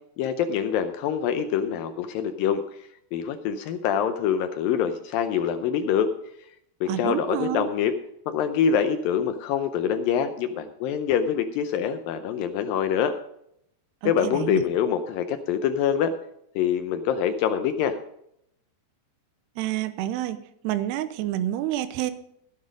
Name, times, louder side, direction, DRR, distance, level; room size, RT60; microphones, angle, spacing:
voice 1, 0.2-2.6 3.1-6.1 6.8-7.9 8.3-13.2 14.1-16.1 16.6-18.0, left 8 dB, 80° left, 9 dB, 2.1 m, -25 dB
voice 2, 6.9-7.7 14.0-14.6 19.6-22.1, right 13 dB, 80° right, 12 dB, 2.9 m, -29 dB
16.0 x 7.8 x 5.2 m, 0.74 s
omnidirectional pair, 4.8 m